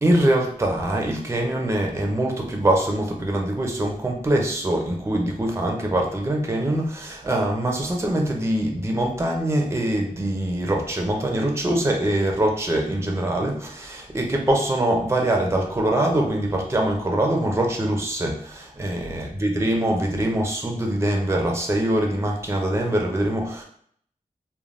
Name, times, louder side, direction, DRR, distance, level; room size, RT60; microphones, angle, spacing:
voice 1, 0.0-23.6, right 1 dB, 20° right, 1 dB, 0.5 m, -23 dB
3.2 x 2.2 x 2.5 m, 0.62 s
wide cardioid pair, 95°, 14 cm